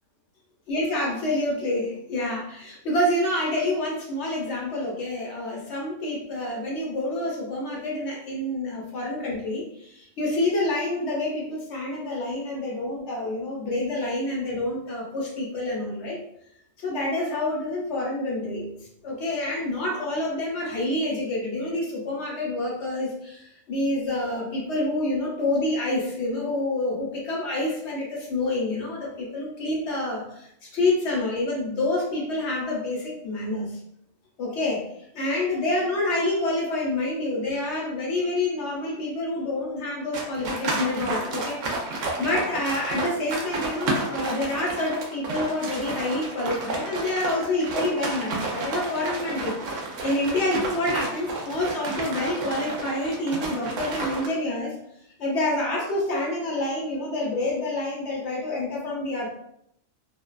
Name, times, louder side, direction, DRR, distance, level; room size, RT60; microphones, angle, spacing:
voice 1, 0.7-16.2 16.8-18.7 19.0-33.8 34.4-34.9 35.1-49.5 50.0-54.7 55.2-59.3, left 1 dB, 65° left, -2 dB, 0.8 m, -27 dB
sound 1, 40.1-54.3, right 2 dB, 70° right, 0.9 m, -31 dB
2.5 x 2.2 x 2.2 m, 0.75 s
omnidirectional pair, 1.4 m